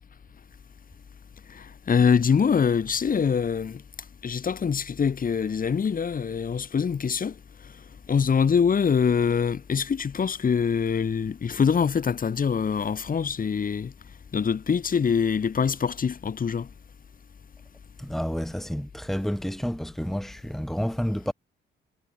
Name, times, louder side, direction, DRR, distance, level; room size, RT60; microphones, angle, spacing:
voice 1, 1.5-3.8 4.2-7.3 8.1-13.9 14.3-16.7, left 6 dB, 45° left, 6.9 m, -24 dB
voice 2, 18.0-21.3, equal, ahead, 3.5 m, -30 dB
cardioid pair, 90°, 20 cm